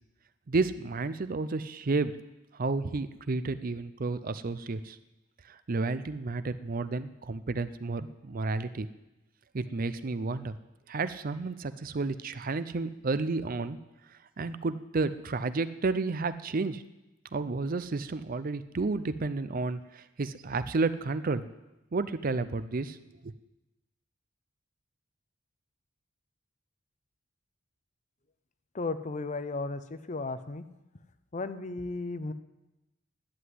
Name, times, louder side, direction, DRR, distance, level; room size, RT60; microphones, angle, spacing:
voice 1, 0.5-2.1 2.6-5.0 5.5-8.9 9.5-10.6 10.9-13.8 14.4-16.8 17.3-21.4 21.9-23.0 23.2-23.3, right 3 dB, 45° right, 13 dB, 0.5 m, -31 dB
voice 2, 28.7-30.6 31.3-32.3, left 3 dB, 35° left, 12 dB, 0.7 m, -34 dB
11.5 x 8.0 x 9.4 m, 0.99 s
head